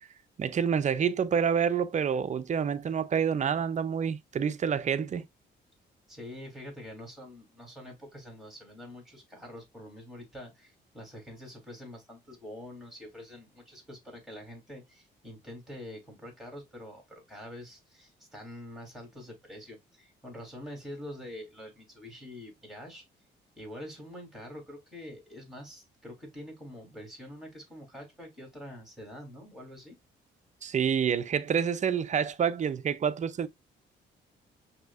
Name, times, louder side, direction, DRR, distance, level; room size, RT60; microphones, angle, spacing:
voice 1, 0.4-5.2 30.6-33.5, right 7 dB, 35° right, 0.5 m, -28 dB
voice 2, 6.1-23.0 23.6-30.0, left 1 dB, ahead, 2.8 m, -45 dB
6.0 x 2.8 x 2.4 m
cardioid pair, 90°, 20 cm